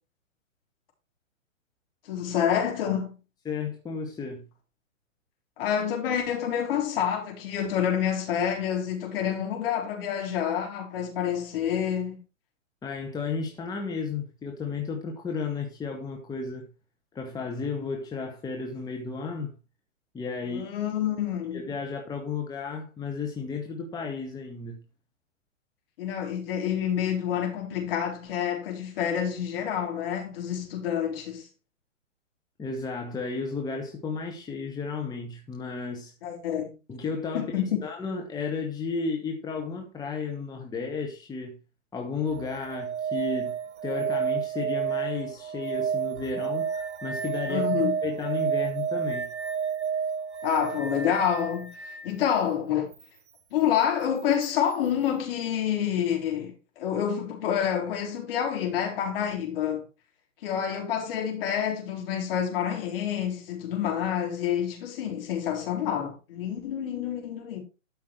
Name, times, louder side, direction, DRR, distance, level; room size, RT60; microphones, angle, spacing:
voice 1, 2.1-3.2 5.6-12.2 20.4-21.6 26.0-31.5 36.2-36.7 37.3-37.8 47.5-47.9 50.4-52.9 53.5-59.9 60.4-67.6, left 9 dB, 45° left, 4.0 m, -28 dB
voice 2, 3.4-4.4 12.8-16.7 17.1-19.5 20.1-20.7 21.5-24.8 32.6-36.1 36.9-37.5 37.8-41.6 41.9-43.5 43.8-46.7 47.0-47.6 48.0-49.3, left 4 dB, 10° left, 1.5 m, -33 dB
sound 1, 42.3-52.1 54.4-54.5, right 7 dB, 60° right, 1.7 m, -30 dB
12.5 x 5.8 x 4.5 m
hypercardioid pair, 125°, 38 cm